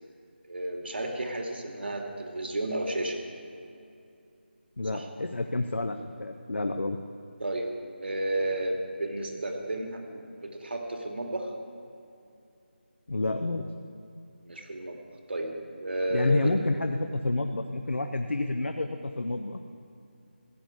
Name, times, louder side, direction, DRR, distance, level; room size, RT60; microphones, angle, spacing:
voice 1, 0.5-3.2 4.9-5.1 7.4-7.7 8.0-11.5 14.4-15.0 15.3-15.5 15.8-16.5, right 1 dB, 70° right, 2 dB, 2.5 m, -32 dB
voice 2, 4.8-7.0 13.1-13.7 16.1-19.7, left 2 dB, 90° left, 6 dB, 0.8 m, -29 dB
15.0 x 7.9 x 8.3 m, 2.6 s
figure-of-eight pair, 170°, 6 cm